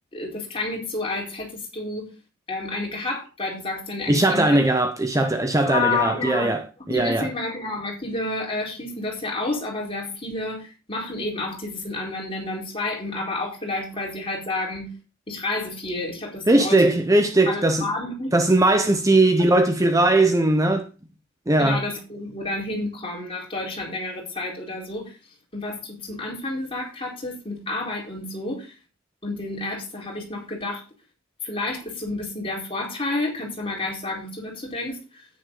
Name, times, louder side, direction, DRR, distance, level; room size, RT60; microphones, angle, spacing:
voice 1, 0.1-2.1 2.5-4.6 5.6-6.5 6.9-15.0 15.3-16.8 17.1-18.4 21.6-25.2 25.5-28.7 29.2-30.8 31.4-35.3, left 2 dB, 30° left, 4.4 m, -30 dB
voice 2, 4.1-7.3 16.5-17.9 18.3-20.9 21.5-21.8, right 2 dB, 15° right, 0.8 m, -19 dB
10.0 x 9.7 x 3.9 m
head